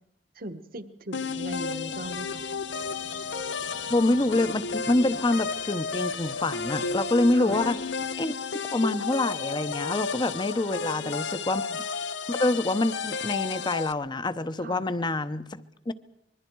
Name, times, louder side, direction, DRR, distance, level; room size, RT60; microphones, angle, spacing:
voice 1, 0.3-2.4 7.3-7.6 10.6-11.2 14.6-14.8, right 1 dB, 55° right, 9 dB, 1.3 m, -39 dB
sound 1, 1.1-13.9, left 5 dB, 80° left, 0.8 m, -33 dB
sound 2, 1.3-8.1, left 3 dB, 60° left, 2.3 m, -46 dB
voice 2, 3.9-7.8 8.2-8.3 8.7-11.8 12.3-15.9, left 2 dB, 25° left, 13 dB, 0.8 m, -26 dB
25.5 x 21.5 x 4.6 m, 0.81 s
head